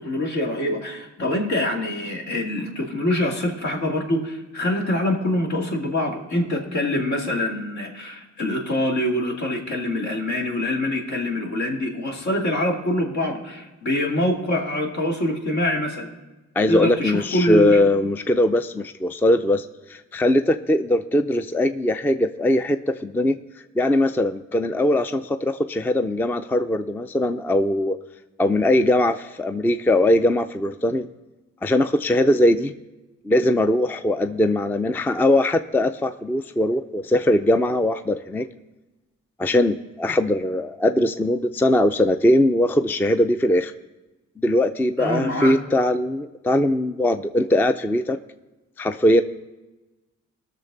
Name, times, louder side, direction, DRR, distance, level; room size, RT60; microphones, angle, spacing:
voice 1, 0.0-16.1 16.7-17.8 45.0-45.6, left 1 dB, 65° left, 0 dB, 2.5 m, -25 dB
voice 2, 16.6-23.4 23.8-28.0 28.4-31.1 31.6-32.7 33.2-38.5 39.4-43.7 44.4-48.2 48.8-49.2, left 1 dB, 5° left, 10 dB, 0.4 m, -20 dB
19.5 x 6.6 x 3.9 m, 1.1 s
cardioid pair, 90°, 30 cm